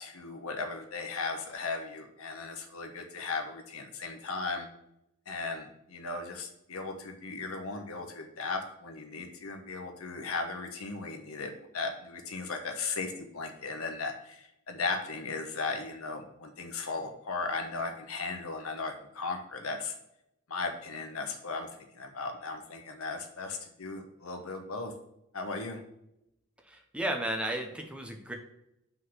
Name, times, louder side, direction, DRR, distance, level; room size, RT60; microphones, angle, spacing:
voice 1, 0.0-4.7 5.3-19.9 20.5-21.7 21.9-24.9 25.3-25.8, left 4 dB, 85° left, 5 dB, 1.1 m, -36 dB
voice 2, 26.7-28.3, right 1 dB, 5° right, 3 dB, 0.8 m, -34 dB
5.5 x 4.0 x 6.1 m, 0.82 s
head